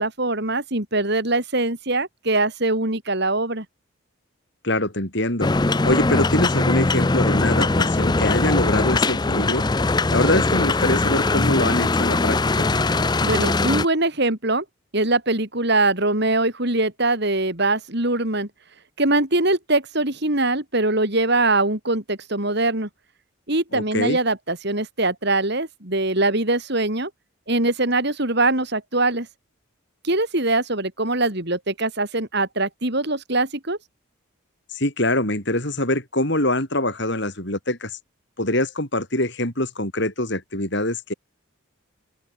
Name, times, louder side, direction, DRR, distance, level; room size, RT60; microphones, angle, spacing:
voice 1, 0.0-3.7 13.2-14.6 14.9-18.5 19.0-22.9 23.5-27.1 27.5-29.3 30.0-33.8, right 2 dB, 50° right, 3.7 m, -22 dB
voice 2, 4.6-5.5 5.8-9.6 10.1-12.7 23.7-24.2 34.7-37.9 38.4-41.1, left 1 dB, 55° left, 7.2 m, -24 dB
sound 1, 5.4-13.9, left 3 dB, 20° left, 0.5 m, -21 dB
open air
head